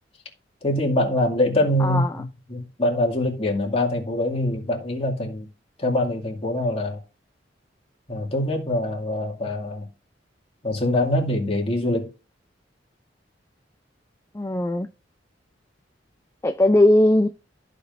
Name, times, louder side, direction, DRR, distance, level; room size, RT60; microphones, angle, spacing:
voice 1, 0.6-5.5 5.8-7.0 8.1-9.9 10.6-12.1, left 1 dB, 35° left, 2.3 m, -24 dB
voice 2, 1.8-2.1 14.3-14.9 16.4-17.3, left 1 dB, 15° left, 0.5 m, -18 dB
14.5 x 5.2 x 2.7 m
head